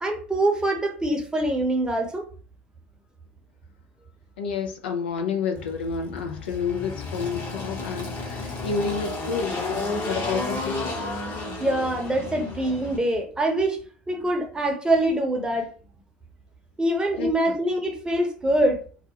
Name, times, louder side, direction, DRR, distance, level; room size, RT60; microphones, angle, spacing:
voice 1, 0.0-2.3 11.6-15.7 16.8-18.8, right 1 dB, 15° right, 0.7 m, -24 dB
voice 2, 4.4-9.6 10.1-10.9 17.1-17.6, left 5 dB, 90° left, 0.5 m, -29 dB
Engine, 5.5-13.0, left 3 dB, 40° left, 1.0 m, -32 dB
2.4 x 2.2 x 2.8 m
hypercardioid pair, 85°, 6 cm